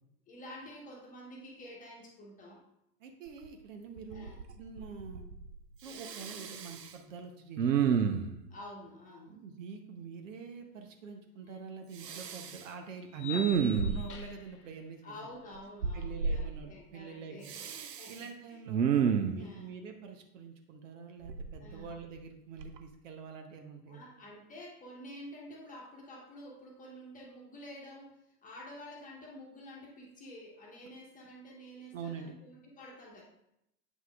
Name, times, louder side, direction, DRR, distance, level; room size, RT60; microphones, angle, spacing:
voice 1, 0.3-2.6 4.1-4.4 8.5-9.4 15.0-17.6 18.0-18.6 19.4-19.7 21.6-22.0 23.9-33.2, equal, 15° left, -2 dB, 1.2 m, -49 dB
voice 2, 3.0-5.3 5.8-8.0 9.3-15.2 15.9-17.5 18.1-24.0 31.9-32.3, right 5 dB, 55° right, 5 dB, 0.9 m, -46 dB
Respiratory sounds, 3.4-3.5 4.0-4.5 4.8-5.5 5.9-6.9 7.6-8.4 12.0-12.6 13.2-14.3 15.8-16.4 17.5-18.2 18.7-19.4 21.3-22.2 22.6-22.8, right 7 dB, 90° right, 0.6 m, -31 dB
sound 1, 11.5-11.6 13.2-14.6, left 4 dB, 45° left, 0.9 m, -43 dB
7.9 x 5.5 x 2.4 m, 0.80 s
figure-of-eight pair, 105°, 47 cm